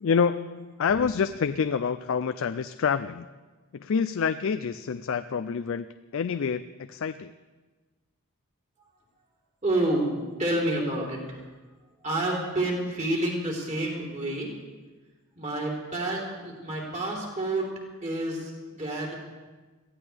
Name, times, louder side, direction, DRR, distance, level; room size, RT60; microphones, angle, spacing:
voice 1, 0.0-3.3 3.7-5.9 6.1-7.3, left 6 dB, 60° left, 11 dB, 0.4 m, -27 dB
voice 2, 9.6-10.1 10.4-11.4 12.0-14.5 15.4-17.7 18.0-19.1, right 1 dB, 30° right, -3 dB, 3.7 m, -29 dB
22.0 x 15.5 x 3.5 m, 1.3 s
head